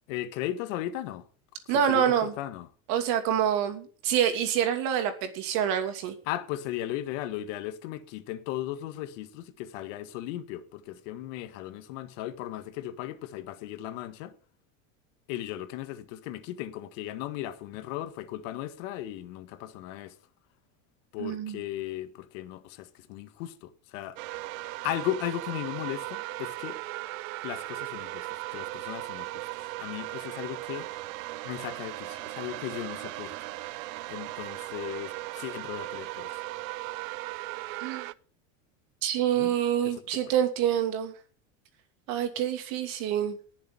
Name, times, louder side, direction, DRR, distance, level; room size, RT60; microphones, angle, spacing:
voice 1, 0.1-1.3 1.7-2.7 6.3-14.3 15.3-20.2 21.1-24.2 24.8-26.8 27.4-29.5 29.8-31.0 31.4-33.5 34.1-36.4 39.4-39.5 39.8-40.2, left 13 dB, 65° left, 1.8 m, -36 dB
voice 2, 1.7-2.3 2.9-6.2 21.2-21.6 37.8-38.1 39.0-41.1 42.1-43.4, right 9 dB, 55° right, 2.8 m, -26 dB
sound 1, 24.2-38.1, right 19 dB, 75° right, 0.8 m, -37 dB
19.0 x 7.4 x 5.5 m
supercardioid pair, 135°, 40 cm